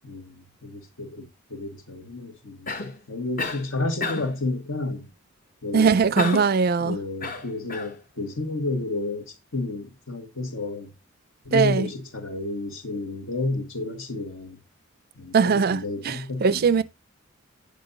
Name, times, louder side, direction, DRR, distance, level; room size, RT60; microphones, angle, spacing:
voice 1, 0.0-5.1 5.6-6.0 6.8-10.9 11.4-14.6 15.2-16.8, left 2 dB, 70° left, 1.6 m, -31 dB
Cough, 2.7-3.0 3.4-3.7 4.0-4.4 6.2-6.6 7.2-7.9, left 3 dB, 40° left, 0.9 m, -30 dB
voice 2, 5.7-7.0 11.5-11.9 15.3-16.8, right 5 dB, 45° right, 0.3 m, -21 dB
8.7 x 5.3 x 3.9 m
head